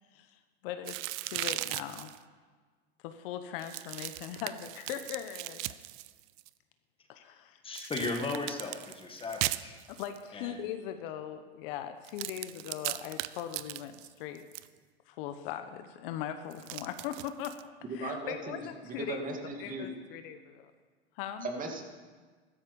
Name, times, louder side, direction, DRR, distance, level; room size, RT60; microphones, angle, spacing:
voice 1, 0.1-2.1 3.0-5.7 7.1-7.9 9.9-14.5 15.1-17.6 17.9-19.2 19.6-20.7 21.2-21.5, left 10 dB, 55° left, 9 dB, 1.1 m, -40 dB
sound 1, 0.9-2.2 3.6-6.5 7.7-10.2 12.0-14.7 16.5-17.6, right 18 dB, 45° right, 0.6 m, -38 dB
voice 2, 7.6-9.8 10.3-10.7, left 3 dB, 15° left, 3 dB, 1.9 m, -36 dB
voice 3, 17.9-18.6 18.8-19.9 21.4-21.8, right 2 dB, 25° right, 2 dB, 2.5 m, -37 dB
14.5 x 12.5 x 5.3 m, 1.4 s
hypercardioid pair, 115°, 33 cm